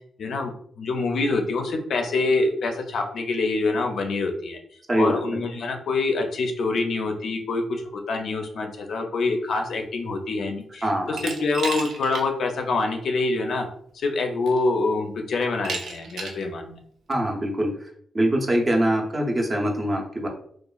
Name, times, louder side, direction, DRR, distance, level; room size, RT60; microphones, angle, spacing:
voice 1, 0.2-4.6 5.0-13.7 13.9-16.8, left 3 dB, 65° left, 4 dB, 0.4 m, -26 dB
voice 2, 4.9-5.4 10.8-11.2 17.1-17.9 18.1-20.3, right 1 dB, 25° right, 1 dB, 0.5 m, -23 dB
Glass, 11.2-12.3 12.7-12.8 13.9-14.0 14.5-14.9 15.6-16.5, right 4 dB, 80° right, 0.5 m, -33 dB
2.9 x 2.2 x 2.3 m, 0.64 s
cardioid pair, 125°, 0 cm